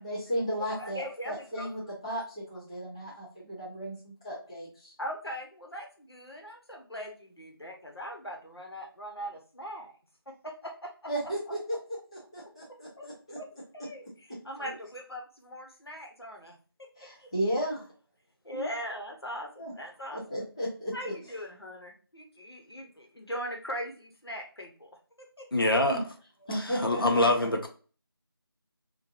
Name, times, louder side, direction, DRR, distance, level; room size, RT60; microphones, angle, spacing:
voice 1, 0.0-4.9 11.1-11.6 12.3-13.4 14.6-14.7 17.0-17.9 18.5-18.7 19.6-19.7 20.1-21.1 25.6-26.0 26.4-27.2, equal, 15° left, -8 dB, 0.7 m, -35 dB
voice 2, 0.8-1.8 5.0-10.0 10.3-11.1 13.0-13.1 13.3-13.5 13.7-16.5 16.8-16.9 17.2-17.6 18.4-20.4 20.9-24.9 25.2-25.7, equal, 85° left, 1 dB, 1.2 m, -40 dB
voice 3, 25.5-26.0 26.8-27.7, left 1 dB, 65° left, 3 dB, 0.8 m, -24 dB
4.2 x 2.6 x 2.5 m, 0.39 s
figure-of-eight pair, 170°, 13 cm